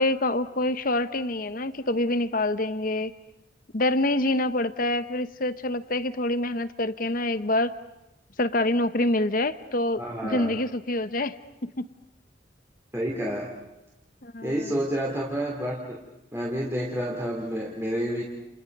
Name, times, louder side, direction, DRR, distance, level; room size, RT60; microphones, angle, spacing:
voice 1, 0.0-3.1 3.7-7.7 8.4-11.4 11.6-11.9 14.2-14.7, left 1 dB, 50° left, 12 dB, 1.1 m, -26 dB
voice 2, 10.0-10.5 12.9-13.5 14.4-16.0 16.3-18.2, equal, 15° right, -2 dB, 2.9 m, -29 dB
30.0 x 30.0 x 5.4 m, 0.92 s
head